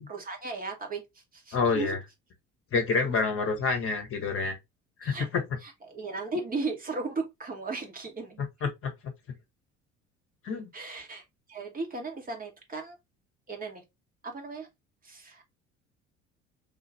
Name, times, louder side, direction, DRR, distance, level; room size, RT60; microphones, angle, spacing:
voice 1, 0.1-2.0 3.0-3.2 5.0-5.3 5.6-8.4 10.7-13.0 13.5-13.8 14.2-14.7 15.0-15.4, right 3 dB, 25° right, 1.0 m, -36 dB
voice 2, 1.5-2.0 2.7-4.6 5.0-5.4 8.6-9.1 10.4-10.7, left 4 dB, 35° left, 1.0 m, -28 dB
3.6 x 2.5 x 3.2 m
figure-of-eight pair, 60°, 36 cm